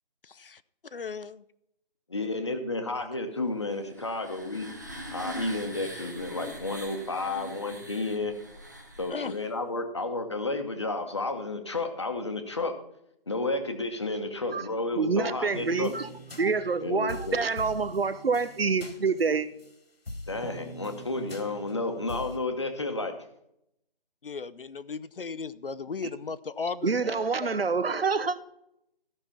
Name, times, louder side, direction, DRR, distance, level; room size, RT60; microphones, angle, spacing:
voice 1, 0.2-0.6 0.9-1.4 9.1-9.3 24.2-27.6, left 5 dB, 65° left, 0.7 m, -36 dB
voice 2, 2.1-4.7 5.1-8.3 9.0-12.7 13.3-15.9 16.8-17.4 20.3-23.2, left 2 dB, 30° left, 1.0 m, -31 dB
sound 1, 3.7-9.5, equal, 20° right, 0.8 m, -42 dB
voice 3, 15.0-16.1 16.4-19.5 26.8-28.4, right 4 dB, 80° right, 1.0 m, -27 dB
some taste, 15.5-19.7 20.1-22.4, left 1 dB, 90° left, 2.2 m, -43 dB
14.5 x 5.9 x 5.7 m
figure-of-eight pair, 175°, 29 cm